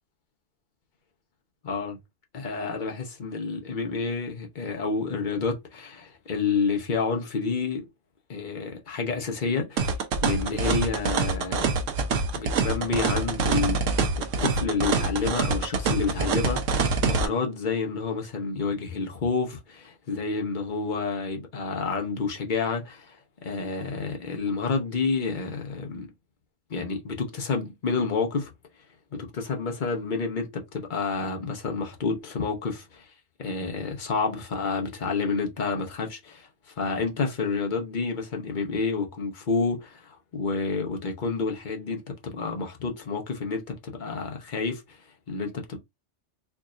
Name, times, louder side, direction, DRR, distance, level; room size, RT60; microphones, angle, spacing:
voice 1, 1.6-2.0 2.3-7.9 8.3-9.9 10.2-11.7 12.3-13.8 14.2-16.6 17.0-26.1 26.7-28.5 29.1-33.1 33.4-45.0 45.3-45.8, left 4 dB, 45° left, 0.9 m, -29 dB
sound 1, 9.8-17.3, right 4 dB, 85° right, 1.1 m, -25 dB
4.6 x 2.7 x 2.5 m
omnidirectional pair, 1.3 m